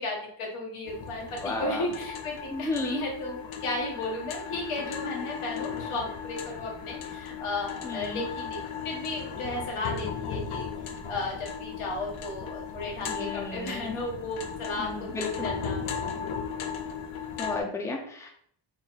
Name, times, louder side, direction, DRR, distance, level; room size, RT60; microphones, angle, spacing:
voice 1, 0.0-10.7 11.0-16.3, left 2 dB, 90° left, -1 dB, 1.3 m, -35 dB
sound 1, 0.9-17.6, left 6 dB, 70° left, 0.7 m, -36 dB
voice 2, 1.4-1.9 2.5-3.0 7.8-8.2 13.1-13.9 14.8-15.5 17.4-18.3, left 3 dB, 5° left, 1 dB, 0.4 m, -33 dB
3.8 x 2.1 x 4.0 m, 0.63 s
wide cardioid pair, 135°, 49 cm